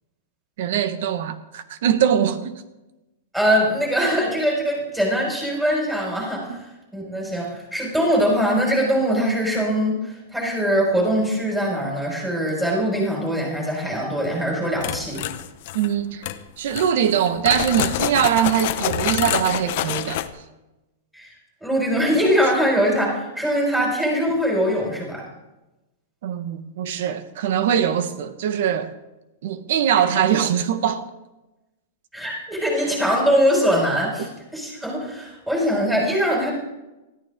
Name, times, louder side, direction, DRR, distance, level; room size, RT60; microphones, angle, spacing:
voice 1, 0.6-2.6 6.5-6.6 15.7-16.3 16.6-20.2 23.8-23.9 26.2-28.9 29.4-31.1 32.8-32.9, right 9 dB, 60° right, 1.5 m, -22 dB
voice 2, 3.3-6.6 6.9-15.2 21.1-21.3 21.6-25.2 32.1-34.3 34.5-36.5, equal, 5° right, 5.6 m, -22 dB
sound 1, 14.8-15.9 16.2-16.4 16.7-20.3, left 13 dB, 50° left, 1.0 m, -27 dB
19.5 x 14.5 x 3.8 m
supercardioid pair, 160°, 0 cm